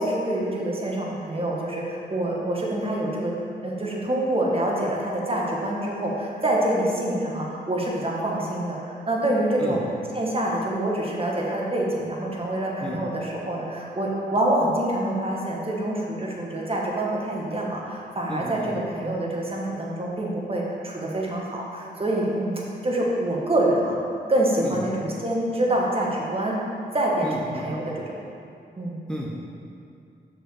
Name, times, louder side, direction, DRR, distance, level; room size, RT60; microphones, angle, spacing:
voice 1, 0.0-3.3 3.6-9.8 10.1-24.0 24.3-26.6 26.9-28.1 28.8-28.9, right 1 dB, 30° right, -3 dB, 1.7 m, -26 dB
voice 2, 18.3-18.8 24.6-24.8 27.2-27.7 29.1-29.4, equal, 5° left, -4 dB, 1.1 m, -33 dB
6.1 x 5.0 x 6.6 m, 2.5 s
cardioid pair, 65°, 18 cm